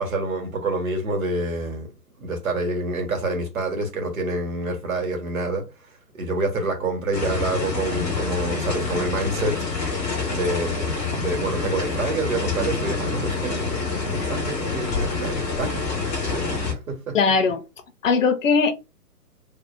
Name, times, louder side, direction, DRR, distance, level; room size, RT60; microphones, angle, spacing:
voice 1, 0.0-9.6 10.3-15.8 16.2-16.4 16.7-17.2, right 2 dB, 55° right, 1.7 m, -27 dB
sound 1, 7.1-16.7, left 4 dB, 10° left, 0.6 m, -27 dB
voice 2, 17.1-17.6 18.0-18.7, left 5 dB, 50° left, 0.8 m, -19 dB
3.3 x 2.3 x 4.3 m
figure-of-eight pair, 135°, 49 cm